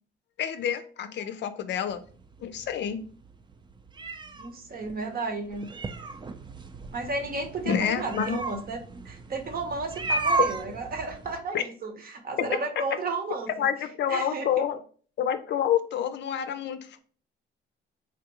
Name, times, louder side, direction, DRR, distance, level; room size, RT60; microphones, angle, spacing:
voice 1, 0.4-2.0 2.4-3.0 7.7-8.4 11.5-11.6 12.4-12.5 13.6-14.8 15.2-17.0, left 9 dB, 60° left, 10 dB, 0.5 m, -28 dB
sound 1, 1.9-11.4, right 3 dB, 25° right, 0.4 m, -34 dB
voice 2, 4.4-5.7 6.9-8.8 9.0-13.5 14.1-14.7, right 3 dB, 50° right, 5 dB, 0.8 m, -33 dB
3.4 x 2.4 x 2.9 m, 0.42 s
cardioid pair, 90°, 20 cm